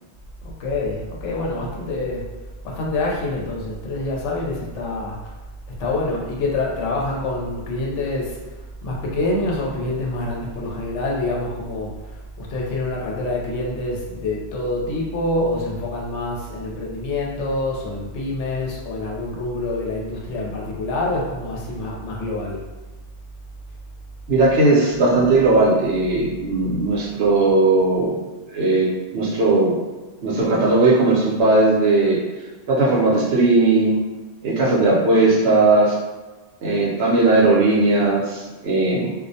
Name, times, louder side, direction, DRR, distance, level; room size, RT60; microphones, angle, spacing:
voice 1, 0.4-2.3 2.6-5.4 5.8-22.6, left 2 dB, 75° left, -2 dB, 0.9 m, -26 dB
voice 2, 24.3-28.2 28.5-28.9 29.1-29.7 30.2-32.2 32.7-34.0 34.4-36.0 36.6-39.1, right 2 dB, 65° right, -5 dB, 0.8 m, -17 dB
2.4 x 2.1 x 2.6 m, 1.2 s
omnidirectional pair, 1.2 m